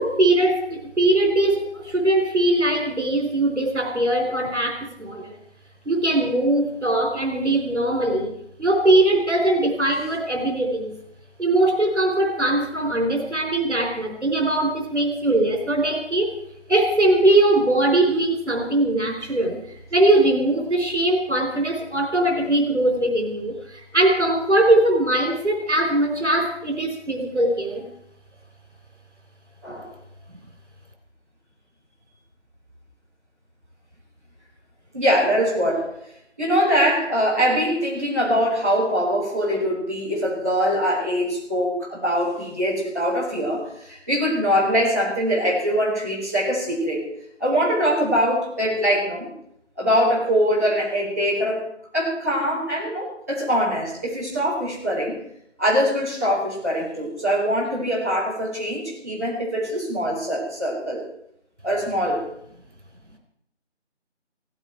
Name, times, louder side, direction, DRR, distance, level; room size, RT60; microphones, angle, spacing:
voice 1, 0.0-5.4 5.9-8.3 8.6-11.0 11.4-16.3 16.7-27.8, right 1 dB, 70° right, 3 dB, 4.3 m, -21 dB
voice 2, 34.9-35.9 36.4-47.0 47.4-49.3 49.8-51.6 51.9-55.1 55.6-61.0 61.6-62.2, equal, 15° right, -12 dB, 4.4 m, -23 dB
16.5 x 16.0 x 4.6 m, 0.72 s
figure-of-eight pair, 175°, 36 cm